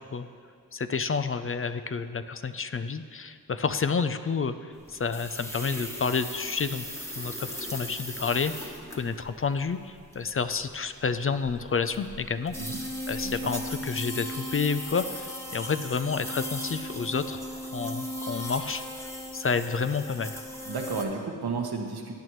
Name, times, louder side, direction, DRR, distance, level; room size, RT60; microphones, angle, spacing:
voice 1, 0.7-6.9 7.2-17.4 17.7-19.1 19.3-20.4, left 5 dB, 35° left, 10 dB, 0.5 m, -30 dB
sound 1, 4.8-21.0, equal, 5° left, 1.4 m, -37 dB
voice 2, 20.7-22.1, right 4 dB, 80° right, 2 dB, 1.3 m, -32 dB
17.5 x 8.9 x 3.1 m, 2.1 s
cardioid pair, 65°, 37 cm